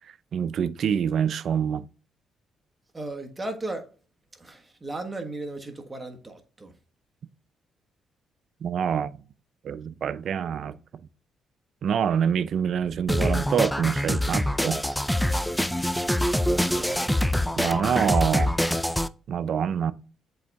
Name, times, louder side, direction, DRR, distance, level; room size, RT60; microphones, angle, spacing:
voice 1, 0.3-1.9 8.6-9.2 9.6-10.8 11.8-14.8 17.6-18.5 19.3-19.9, right 8 dB, 60° right, 0.5 m, -26 dB
voice 2, 2.9-3.9 4.3-6.7 16.5-17.2, right 2 dB, 20° right, 1.3 m, -36 dB
sound 1, 13.1-19.1, left 1 dB, 5° left, 0.4 m, -25 dB
7.8 x 3.8 x 3.4 m
cardioid pair, 90°, 0 cm